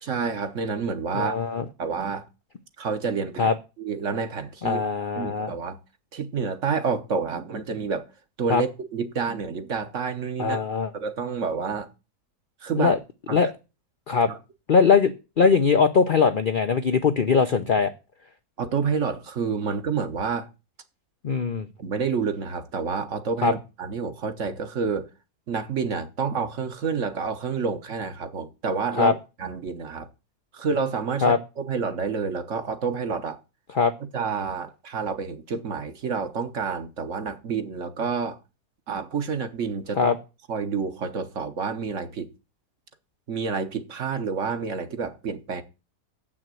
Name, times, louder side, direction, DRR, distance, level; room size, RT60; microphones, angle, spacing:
voice 1, 0.0-1.4 1.8-2.3 2.8-4.8 5.2-5.8 6.1-8.1 8.4-10.6 10.9-11.9 12.6-12.9 13.3-13.5 14.3-14.4 18.6-20.5 21.8-25.1 25.5-30.1 30.5-33.4 34.1-38.4 38.9-40.1 40.5-42.3 43.3-45.6, right 5 dB, 55° right, 1.3 m, -29 dB
voice 2, 1.1-1.6 3.4-3.5 4.6-5.5 8.5-8.6 10.4-10.9 12.8-13.0 13.3-13.5 14.1-14.3 14.7-15.1 15.4-17.9 21.2-21.7 23.4-23.5 29.0-29.1 31.2-31.4 33.7-33.9 40.0-40.2, left 5 dB, 55° left, 0.5 m, -21 dB
7.7 x 6.1 x 7.6 m
omnidirectional pair, 1.7 m